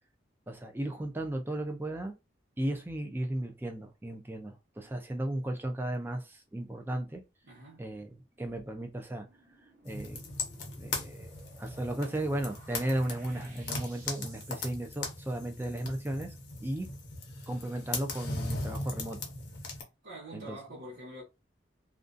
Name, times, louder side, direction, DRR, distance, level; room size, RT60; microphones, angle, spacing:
voice 1, 0.5-2.1 2.6-7.2 7.8-9.3 9.8-10.2 10.8-16.3 16.6-16.9 17.5-19.2 20.3-20.6, right 1 dB, 10° right, 0.3 m, -35 dB
voice 2, 7.4-7.9 20.0-21.2, right 1 dB, 90° right, 1.1 m, -45 dB
sound 1, 9.1-14.7, right 2 dB, 45° right, 0.8 m, -57 dB
sound 2, 9.9-19.8, left 2 dB, 60° left, 0.7 m, -39 dB
2.5 x 2.3 x 2.5 m
head